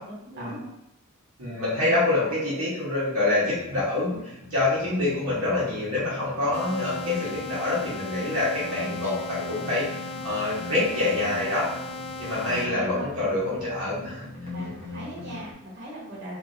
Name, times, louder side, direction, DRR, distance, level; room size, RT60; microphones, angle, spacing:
voice 1, 0.0-0.7 12.4-13.1 14.5-16.4, right 1 dB, 55° right, -7 dB, 1.2 m, -39 dB
voice 2, 1.4-9.8 10.2-11.7 12.2-14.2, left 2 dB, 75° right, -8 dB, 1.1 m, -26 dB
sound 1, 3.4-15.5, left 2 dB, 30° right, 0.9 m, -41 dB
sound 2, 6.5-12.7, left 2 dB, 25° left, 0.3 m, -37 dB
2.9 x 2.6 x 2.5 m, 0.80 s
head